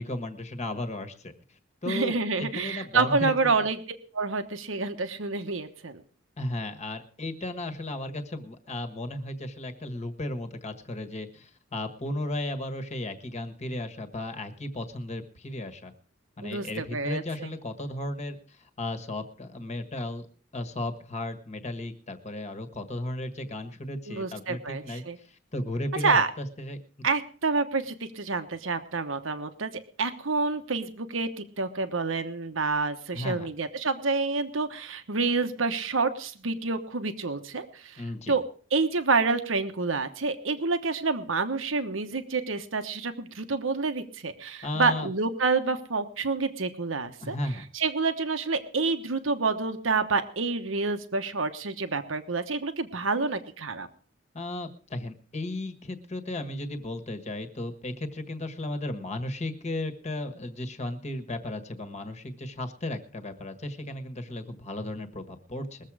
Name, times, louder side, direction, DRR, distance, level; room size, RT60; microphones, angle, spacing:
voice 1, 0.0-1.3 1.8-3.5 6.4-15.9 16.4-20.3 20.5-26.8 33.1-33.5 38.0-38.3 44.6-45.1 47.2-47.7 54.3-65.8, left 1 dB, 35° left, 9 dB, 1.5 m, -35 dB
voice 2, 1.9-3.8 4.1-6.0 16.4-17.5 24.1-25.2 26.0-26.3 27.0-29.7 30.0-38.4 38.7-47.4 47.7-53.9, right 4 dB, 85° right, 8 dB, 1.2 m, -28 dB
21.5 x 7.5 x 4.9 m, 0.42 s
head